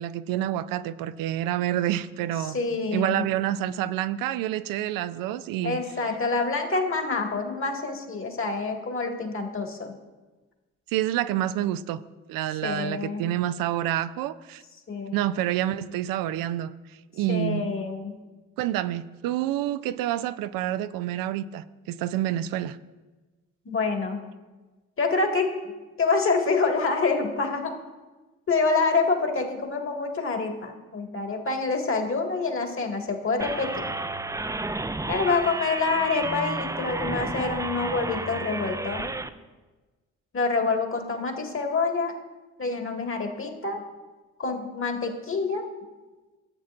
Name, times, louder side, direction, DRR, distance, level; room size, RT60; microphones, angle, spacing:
voice 1, 0.0-2.6 2.9-5.8 10.9-12.0 12.3-14.6 15.1-17.7 18.6-22.8, right 12 dB, 65° right, 14 dB, 0.5 m, -28 dB
voice 2, 2.4-3.2 5.6-9.9 12.6-13.2 14.9-15.2 17.3-18.1 23.7-24.2 25.0-25.5 26.0-27.7 28.5-33.9 35.1-39.0 40.3-42.2 42.6-43.8 44.4-45.6, left 4 dB, 35° left, 3 dB, 1.9 m, -27 dB
sound 1, 33.4-39.3, right 2 dB, 10° right, 0.5 m, -32 dB
14.0 x 8.2 x 2.5 m, 1.2 s
hypercardioid pair, 45°, 36 cm